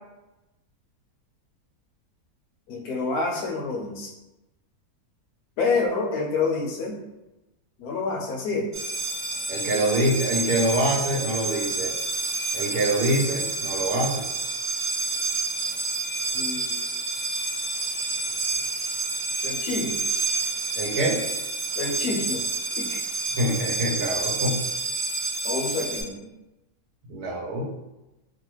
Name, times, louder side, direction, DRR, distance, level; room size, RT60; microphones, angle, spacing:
voice 1, 2.7-4.1 5.6-7.0 7.8-8.7 16.3-16.8 19.4-20.0 21.8-22.4 22.8-23.0 25.4-26.1, left 3 dB, 80° left, 1 dB, 1.1 m, -28 dB
sound 1, 8.7-26.0, right 3 dB, 60° right, 1.1 m, -29 dB
voice 2, 9.5-11.9 12.5-14.3 20.7-21.2 23.4-24.6 27.1-27.6, right 1 dB, 80° right, -3 dB, 1.3 m, -25 dB
3.0 x 2.2 x 3.0 m, 0.97 s
omnidirectional pair, 1.6 m